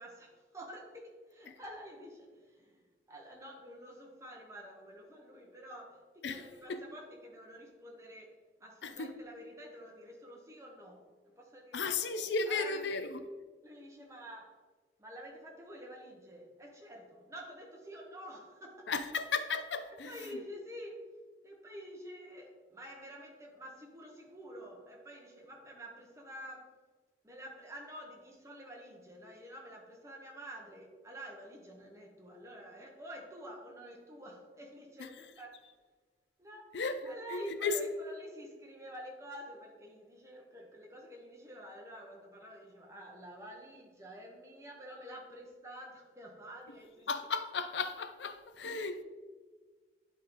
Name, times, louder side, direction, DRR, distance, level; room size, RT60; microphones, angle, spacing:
voice 1, 0.0-2.8 3.1-8.3 8.6-13.1 13.6-14.6 15.0-19.1 19.9-21.1 21.4-26.7 27.2-35.7 36.4-36.7 37.0-47.1 48.7-48.8, equal, 15° right, 1.2 m, -49 dB
voice 2, 6.2-6.8 8.8-9.1 11.7-13.2 18.9-20.2 35.0-35.1 36.7-37.0 37.3-37.8 47.1-49.0, left 4 dB, 80° left, 0.5 m, -35 dB
10.5 x 3.8 x 3.9 m
head